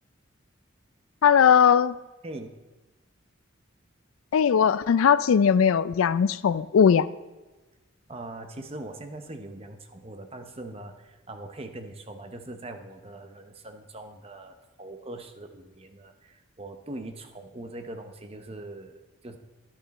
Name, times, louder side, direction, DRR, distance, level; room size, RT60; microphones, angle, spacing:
voice 1, 1.2-1.9 4.3-7.1, left 7 dB, 90° left, 17 dB, 0.4 m, -19 dB
voice 2, 8.1-19.4, right 2 dB, 30° right, 7 dB, 0.8 m, -41 dB
10.5 x 8.8 x 4.1 m, 1.2 s
head